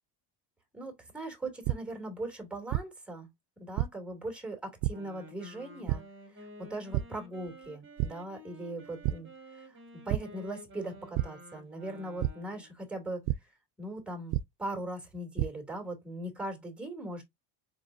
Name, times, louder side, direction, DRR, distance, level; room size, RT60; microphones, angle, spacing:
voice 1, 0.7-3.3 3.6-6.0 6.3-17.2, right 2 dB, ahead, 2.6 m, -40 dB
sound 1, 1.6-1.7 2.7-2.8 3.8-3.9 4.8-4.9 5.9-6.0 6.9-7.0 7.5-7.7 8.0-8.1 9.0-9.1 10.1-10.2 11.1-11.2 12.2-12.3 13.3-13.4 14.3-14.4 15.1-15.5, right 16 dB, 60° right, 0.5 m, -28 dB
Wind instrument woodwind instrument, 4.9-12.7, equal, 25° right, 2.4 m, -51 dB
4.8 x 4.1 x 2.6 m
cardioid pair, 125°, 49 cm